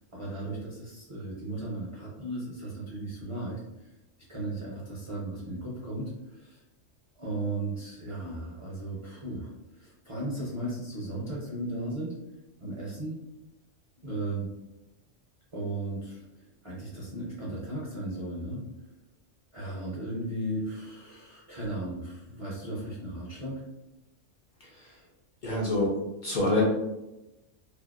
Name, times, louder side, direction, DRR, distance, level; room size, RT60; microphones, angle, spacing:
voice 1, 0.1-3.6 4.3-6.6 7.2-12.2 12.6-13.2 14.0-14.5 15.5-18.6 19.5-23.6, right 1 dB, 50° right, -7 dB, 0.4 m, -36 dB
voice 2, 25.4-25.9 26.2-26.6, left 2 dB, 55° left, -5 dB, 0.6 m, -26 dB
2.7 x 2.3 x 2.2 m, 0.97 s
omnidirectional pair, 1.3 m